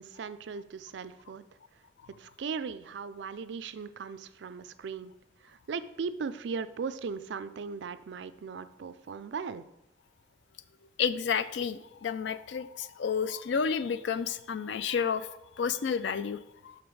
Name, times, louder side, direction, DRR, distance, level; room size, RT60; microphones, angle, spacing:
voice 1, 0.0-1.4 2.2-5.1 5.4-9.6, right 5 dB, 75° right, 13 dB, 0.4 m, -38 dB
voice 2, 11.0-15.3 15.6-16.7, left 6 dB, 75° left, 14 dB, 0.4 m, -31 dB
6.1 x 5.1 x 4.7 m, 0.87 s
head